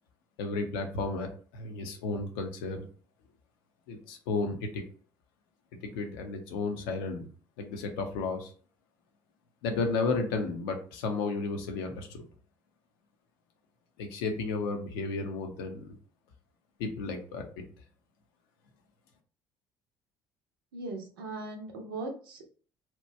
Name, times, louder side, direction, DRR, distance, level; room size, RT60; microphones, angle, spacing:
voice 1, 0.4-2.9 3.9-4.8 5.7-7.3 7.6-8.5 9.6-12.2 14.0-16.0 16.8-17.6, left 3 dB, 75° left, 4 dB, 0.6 m, -33 dB
voice 2, 20.7-22.5, right 2 dB, 80° right, 3 dB, 0.6 m, -39 dB
2.9 x 2.2 x 3.2 m, 0.42 s
hypercardioid pair, 55°, 12 cm